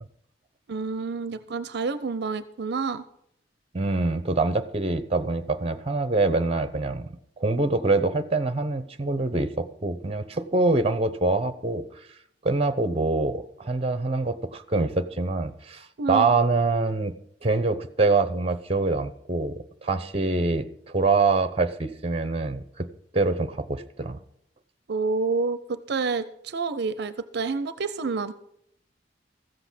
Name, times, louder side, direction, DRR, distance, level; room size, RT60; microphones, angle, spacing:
voice 1, 0.7-3.0 16.0-16.3 24.9-28.3, right 4 dB, 65° right, 14 dB, 0.5 m, -28 dB
voice 2, 3.7-7.1 7.4-11.8 12.4-17.1 17.4-20.7 20.9-22.9 23.1-24.2, right 3 dB, 35° right, 13 dB, 0.8 m, -25 dB
14.0 x 7.9 x 6.1 m, 0.72 s
head